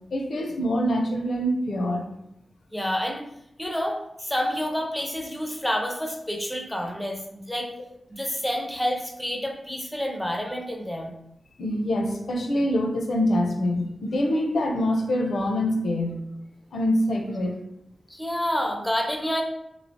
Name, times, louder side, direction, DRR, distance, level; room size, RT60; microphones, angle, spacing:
voice 1, 0.1-2.1 11.6-16.2 16.7-17.6, left 1 dB, 70° left, 3 dB, 0.5 m, -25 dB
voice 2, 2.7-3.3 3.6-7.7 8.1-11.1 18.1-19.4, equal, 5° left, 2 dB, 0.4 m, -28 dB
3.1 x 2.8 x 2.7 m, 0.81 s
wide cardioid pair, 170°, 0 cm